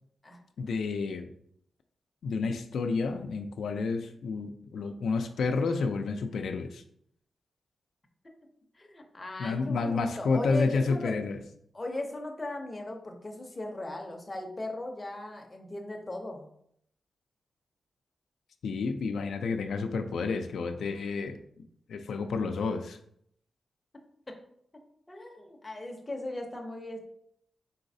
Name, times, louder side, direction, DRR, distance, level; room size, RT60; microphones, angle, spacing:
voice 1, 0.6-1.2 2.2-6.8 9.4-11.4 18.6-21.4 21.9-23.0, left 4 dB, 80° left, 6 dB, 0.3 m, -30 dB
voice 2, 8.8-11.2 11.7-16.5 24.3-24.4 25.1-27.0, left 2 dB, 20° left, 2 dB, 0.6 m, -38 dB
4.0 x 3.9 x 2.6 m, 0.69 s
wide cardioid pair, 155°, 0 cm